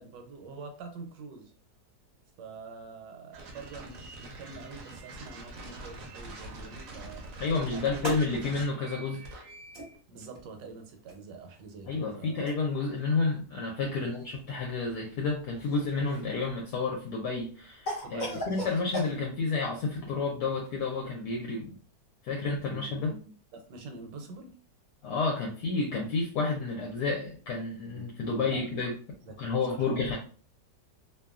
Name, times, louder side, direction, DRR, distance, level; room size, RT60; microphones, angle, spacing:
voice 1, 0.0-1.5 2.4-7.4 7.7-8.1 10.1-12.4 13.8-14.1 18.0-18.7 22.7-24.6 27.9-28.6 29.3-29.4 29.7-30.2, right 4 dB, 80° right, 5 dB, 1.2 m, -45 dB
sound 1, 3.3-10.0, right 2 dB, 65° right, 0.8 m, -45 dB
voice 2, 7.4-9.2 11.9-14.2 14.5-21.8 22.2-23.1 25.0-28.9 29.4-30.2, left 4 dB, 75° left, 0 dB, 1.1 m, -30 dB
sound 2, 7.9-17.7, right 1 dB, 25° right, 0.6 m, -48 dB
Cough, 15.6-16.4 17.9-19.1, left 1 dB, 45° left, 0.6 m, -36 dB
2.8 x 2.2 x 2.3 m, 0.40 s
omnidirectional pair, 1.9 m